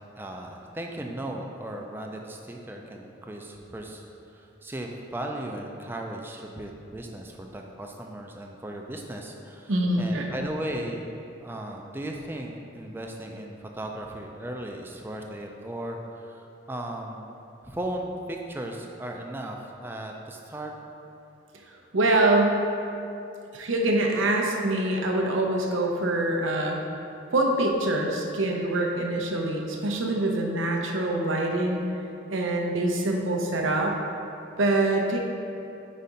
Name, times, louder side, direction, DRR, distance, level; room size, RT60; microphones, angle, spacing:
voice 1, 0.2-4.0 4.3-11.1 11.4-17.3 17.6-20.7, right 1 dB, 10° right, 1 dB, 0.4 m, -36 dB
voice 2, 9.7-10.3 21.9-22.6 23.5-26.8 27.3-31.8 32.3-34.0 34.6-35.2, right 2 dB, 85° right, 1 dB, 0.7 m, -24 dB
4.6 x 4.2 x 5.1 m, 2.7 s
head